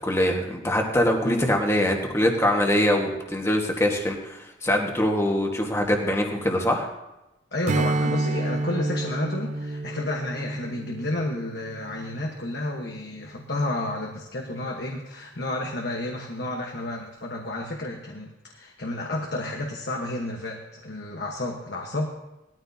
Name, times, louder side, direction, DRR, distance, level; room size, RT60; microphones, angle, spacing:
voice 1, 0.0-6.9, left 1 dB, 15° left, 1 dB, 1.5 m, -23 dB
voice 2, 7.5-22.1, left 1 dB, 60° left, 0 dB, 1.3 m, -31 dB
Strum, 7.7-12.4, right 2 dB, 40° right, 0.4 m, -29 dB
19.0 x 13.5 x 2.8 m, 0.97 s
head